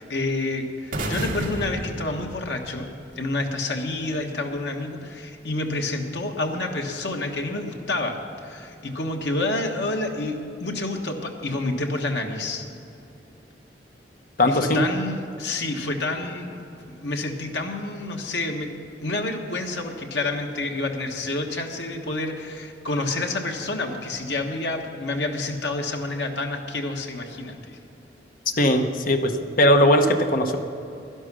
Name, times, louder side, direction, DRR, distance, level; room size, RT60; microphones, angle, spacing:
voice 1, 0.0-2.9 3.2-8.2 8.4-12.6 14.4-18.7 19.0-27.8, left 2 dB, 80° left, 3 dB, 1.4 m, -28 dB
sound 1, 0.9-3.0, right 1 dB, 50° right, 1.8 m, -31 dB
voice 2, 14.4-14.8 28.6-30.6, left 1 dB, 50° left, 6 dB, 1.0 m, -19 dB
11.5 x 11.0 x 6.2 m, 2.8 s
head